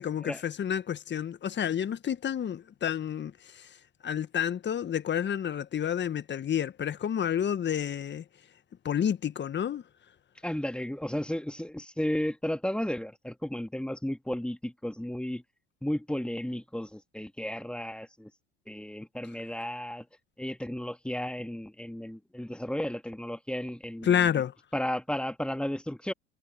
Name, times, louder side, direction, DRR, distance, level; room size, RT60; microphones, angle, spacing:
voice 1, 0.0-3.8 4.0-8.2 8.8-9.8 24.0-24.5, left 9 dB, 35° left, 1.5 m, -29 dB
voice 2, 10.4-15.4 15.8-18.3 18.7-20.1 20.4-24.4 24.7-26.1, left 1 dB, 5° left, 1.8 m, -34 dB
hypercardioid pair, 75°, 33 cm